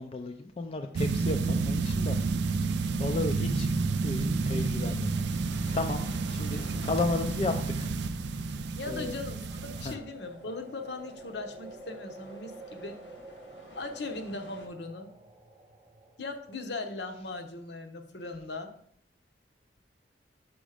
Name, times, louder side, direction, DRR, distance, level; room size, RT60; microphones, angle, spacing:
voice 1, 0.0-2.5 2.9-3.7 4.0-5.1 5.5-7.9 8.9-9.2 9.8-10.0, left 3 dB, 30° left, 5 dB, 0.4 m, -33 dB
sound 1, 1.0-10.0, right 4 dB, 70° right, 0.4 m, -30 dB
sound 2, 1.4-14.7, left 1 dB, 85° left, 1.7 m, -52 dB
voice 2, 8.7-13.0 13.7-15.1 16.2-18.7, left 2 dB, 65° left, 5 dB, 0.9 m, -39 dB
sound 3, 9.1-17.1, right 2 dB, 30° right, 0.6 m, -50 dB
6.2 x 5.0 x 5.0 m, 0.64 s
head